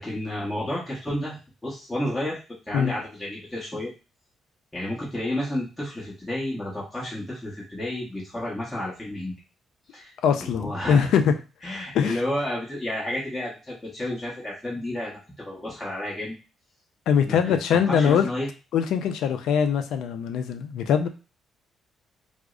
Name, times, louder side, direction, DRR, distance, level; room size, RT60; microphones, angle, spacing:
voice 1, 0.0-2.4 2.7-3.9 4.7-9.3 9.9-10.1 10.4-11.1 11.6-16.4 17.3-17.6 17.9-18.5, left 1 dB, 15° left, -6 dB, 1.1 m, -31 dB
voice 2, 10.2-11.3 11.9-12.2 17.1-18.3 18.7-21.1, left 7 dB, 80° left, 8 dB, 0.4 m, -22 dB
4.5 x 2.1 x 2.4 m, 0.32 s
cardioid pair, 90°, 0 cm